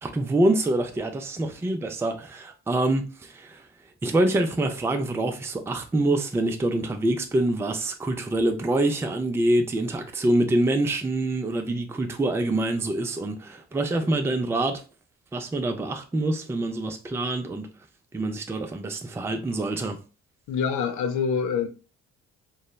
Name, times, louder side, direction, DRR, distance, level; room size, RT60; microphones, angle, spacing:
voice 1, 0.0-3.6 4.0-14.8 15.3-17.7 18.1-20.0, right 1 dB, 10° right, 0.3 m, -25 dB
voice 2, 20.5-21.7, left 6 dB, 75° left, 0.5 m, -25 dB
3.0 x 2.0 x 2.2 m
cardioid pair, 90°, 30 cm